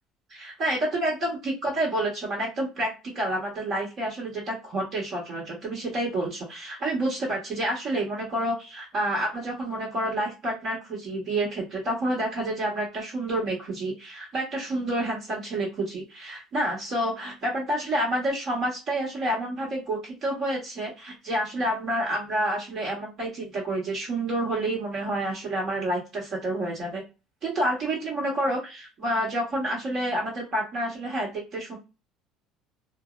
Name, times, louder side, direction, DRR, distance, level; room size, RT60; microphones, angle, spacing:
voice 1, 0.4-27.0 27.4-31.8, right 1 dB, 45° right, -3 dB, 1.1 m, -29 dB
2.6 x 2.0 x 2.3 m, 0.28 s
cardioid pair, 115°, 0 cm